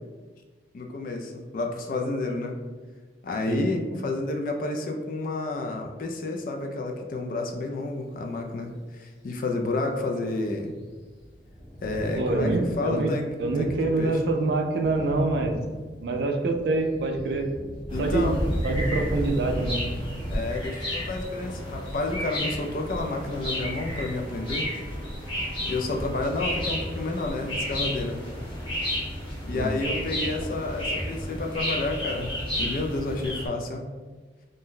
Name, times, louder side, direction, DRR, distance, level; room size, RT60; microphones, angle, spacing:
voice 1, 0.7-2.6 3.2-10.7 11.8-13.3 13.6-14.2 17.9-18.4 20.3-24.7 25.7-28.2 29.4-33.8, left 2 dB, 50° left, 3 dB, 0.3 m, -30 dB
Thunder, 10.6-20.4, equal, 70° left, 0.9 m, -34 dB
voice 2, 12.2-13.1 13.4-15.6 16.0-17.5 18.0-18.3 18.6-20.0 29.5-29.7, right 2 dB, 65° right, 4 dB, 0.4 m, -25 dB
sound 1, 17.9-33.5, equal, 30° left, 0.8 m, -33 dB
sound 2, 21.0-31.3, equal, 20° right, 0.8 m, -46 dB
2.6 x 2.1 x 3.6 m, 1.4 s
head